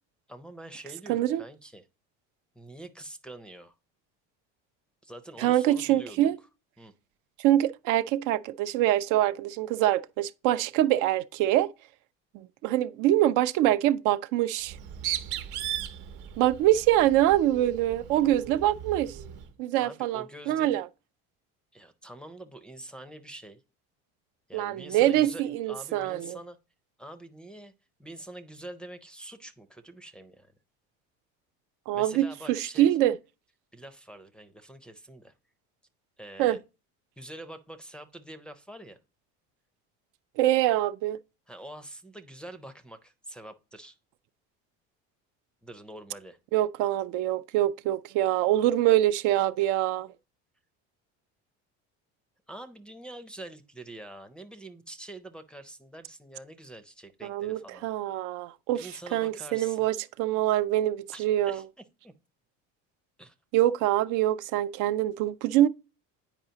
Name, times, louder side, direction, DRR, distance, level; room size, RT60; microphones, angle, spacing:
voice 1, 0.3-1.8 2.5-3.7 5.0-6.3 6.8-6.9 19.8-20.8 21.7-23.6 24.5-26.6 27.0-27.7 28.0-30.5 31.9-32.9 33.7-35.3 36.2-36.6 37.2-39.0 41.5-44.0 45.6-46.4 52.5-57.9 58.7-59.9 61.1-61.7 62.0-62.1 63.2-63.3, right 1 dB, 5° left, 0.4 m, -45 dB
voice 2, 1.1-1.4 5.4-6.4 7.4-11.7 12.3-14.8 16.4-19.2 19.6-20.9 24.5-26.4 31.9-33.2 36.4-36.6 40.4-41.2 46.5-50.1 57.2-61.6 63.5-65.7, right 13 dB, 70° right, 0.5 m, -25 dB
Bird, 14.6-19.5, right 11 dB, 85° right, 0.9 m, -37 dB
9.0 x 4.8 x 2.8 m
cardioid pair, 130°, 33 cm